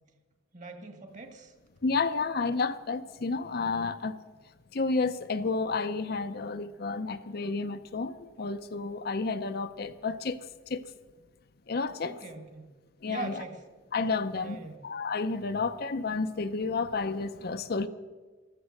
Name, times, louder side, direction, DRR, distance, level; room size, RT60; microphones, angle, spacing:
voice 1, 0.5-1.5 12.0-12.7 13.1-13.6 14.4-14.8, right 3 dB, 40° right, 1.6 m, -41 dB
voice 2, 1.8-4.2 4.7-10.4 10.7-10.8 11.7-12.2 13.0-13.4 13.9-17.9, left 4 dB, 50° left, 0.6 m, -31 dB
14.5 x 14.0 x 6.5 m
head